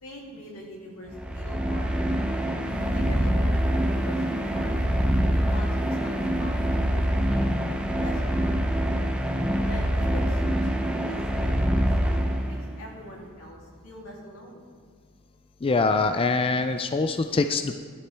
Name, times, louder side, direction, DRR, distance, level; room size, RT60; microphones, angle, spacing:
voice 1, 0.0-2.1 2.9-4.8 5.3-7.4 7.8-8.6 9.6-14.6, left 1 dB, 85° left, -3 dB, 3.0 m, -43 dB
sound 1, 1.1-12.8, equal, 5° right, 0.7 m, -25 dB
sound 2, 2.7-9.1 9.4-9.9 10.7-10.8 11.6-11.7 12.3-12.5, right 1 dB, 35° right, 1.6 m, -43 dB
voice 2, 15.6-17.8, left 3 dB, 25° left, 8 dB, 0.4 m, -24 dB
15.5 x 11.5 x 3.4 m, 2.1 s
head